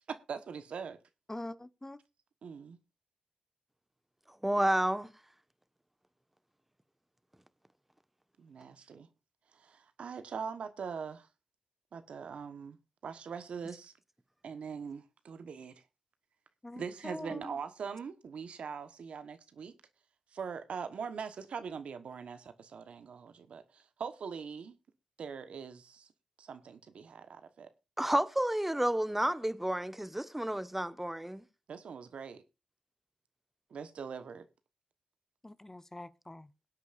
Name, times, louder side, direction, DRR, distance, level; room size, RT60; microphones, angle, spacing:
voice 1, 0.1-1.0 2.4-2.8 8.4-9.1 9.5-11.3 11.9-12.8 13.0-13.9 14.4-15.7 16.8-19.7 20.3-24.7 25.2-26.1 26.4-27.7 31.7-32.4 33.7-34.5, right 6 dB, 75° right, 1.1 m, -42 dB
voice 2, 1.3-2.0 16.6-17.5 35.4-36.5, left 1 dB, 20° left, 0.8 m, -44 dB
voice 3, 4.4-5.1 28.0-31.4, right 1 dB, 10° right, 1.2 m, -30 dB
22.0 x 8.3 x 2.5 m
supercardioid pair, 40°, 2 cm